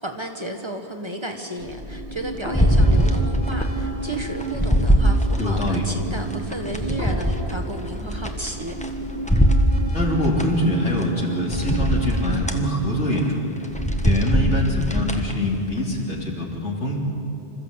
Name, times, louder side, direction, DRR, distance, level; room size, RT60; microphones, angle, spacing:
voice 1, 0.0-8.8, right 1 dB, 25° right, 3 dB, 1.5 m, -33 dB
sound 1, 1.6-14.9, right 2 dB, 75° right, 4.4 m, -33 dB
sound 2, 2.5-3.7 4.1-5.8 6.3-8.9 9.3-10.5 11.0-11.1 11.5-12.6 13.1-13.3 13.6-15.3 15.8-15.9, equal, 5° left, 1.3 m, -21 dB
voice 2, 5.4-5.8 9.9-13.5 14.0-17.0, left 1 dB, 85° left, -1 dB, 3.4 m, -24 dB
26.5 x 14.0 x 8.2 m, 2.8 s
omnidirectional pair, 1.2 m